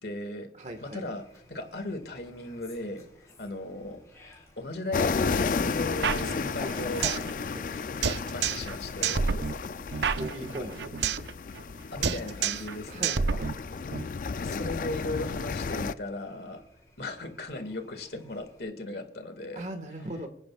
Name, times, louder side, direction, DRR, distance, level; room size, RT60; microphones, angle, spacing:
voice 1, 0.0-0.5 0.8-3.0 3.4-4.0 4.6-7.0 7.7-9.3 10.6-10.7 11.9-13.1 14.4-16.6 17.0-19.7, left 2 dB, 65° left, 6 dB, 1.9 m, -37 dB
Fowl, 0.6-18.6, left 1 dB, 20° left, 4.2 m, -52 dB
voice 2, 0.6-1.0 7.4-7.7 10.2-10.8 12.9-13.5 19.5-20.3, right 1 dB, 40° right, 6 dB, 1.6 m, -38 dB
sound 1, 4.9-15.9, left 4 dB, 45° left, 0.3 m, -33 dB
sound 2, 6.0-7.3 7.6-7.7 8.0-8.7 9.0-11.3 11.6-11.8 12.0-12.7 13.0-14.0, right 6 dB, 80° right, 0.6 m, -29 dB
26.5 x 10.5 x 2.4 m, 0.73 s
head